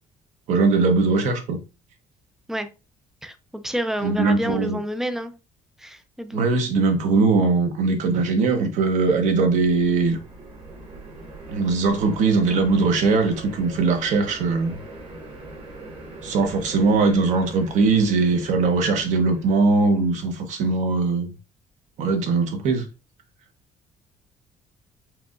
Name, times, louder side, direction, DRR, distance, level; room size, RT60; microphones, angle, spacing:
voice 1, 0.5-1.6 4.0-4.8 6.3-10.2 11.5-14.8 16.2-21.3 22.0-22.8, right 4 dB, 60° right, 1.0 m, -20 dB
voice 2, 3.2-5.3 5.8-6.5, equal, 5° right, 0.3 m, -29 dB
sound 1, 8.9-20.2, right 2 dB, 40° right, 1.5 m, -42 dB
4.6 x 3.7 x 2.4 m
cardioid pair, 175°, 14 cm